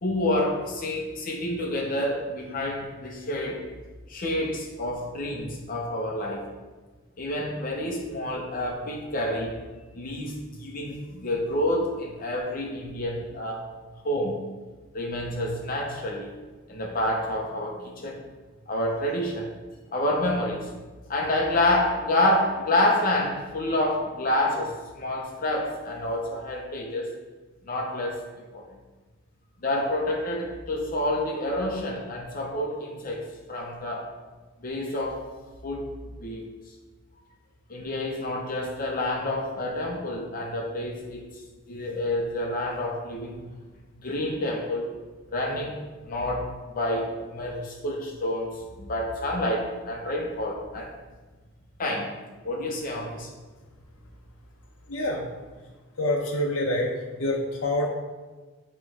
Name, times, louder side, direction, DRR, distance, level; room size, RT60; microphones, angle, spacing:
voice 1, 0.0-3.6 4.1-6.5 7.2-9.6 9.9-13.7 14.0-14.4 14.9-16.3 16.7-18.2 18.7-19.5 19.9-20.7 21.1-27.1 27.7-28.8 29.6-34.1 34.6-35.2 35.6-35.9 36.2-36.4 37.7-41.2 41.7-43.5 43.9-44.9 45.3-45.8 46.0-50.9 51.8-52.1 52.4-53.3, left 1 dB, 40° left, 0 dB, 0.7 m, -28 dB
voice 2, 54.9-55.3 56.0-56.9 57.2-57.9, left 1 dB, 70° left, 0 dB, 0.7 m, -26 dB
8.3 x 3.1 x 4.7 m, 1.3 s
head